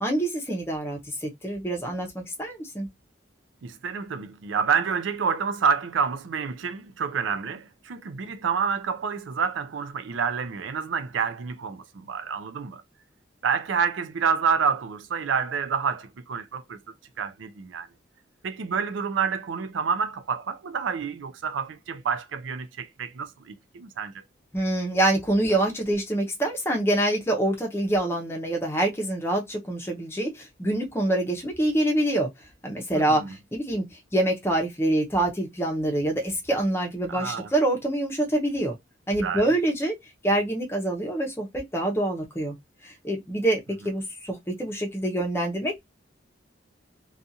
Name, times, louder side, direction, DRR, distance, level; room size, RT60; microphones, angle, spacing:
voice 1, 0.0-2.9 24.5-32.3 32.6-33.8 34.1-38.7 39.1-39.9 40.2-42.6 42.8-43.6 43.8-45.8, right 1 dB, 15° left, 0.7 m, -26 dB
voice 2, 3.6-12.8 13.4-16.8 17.2-17.9 18.4-24.2 32.9-33.3 37.1-37.5 39.2-39.5, right 6 dB, 85° right, 0.5 m, -28 dB
2.5 x 2.4 x 2.7 m
head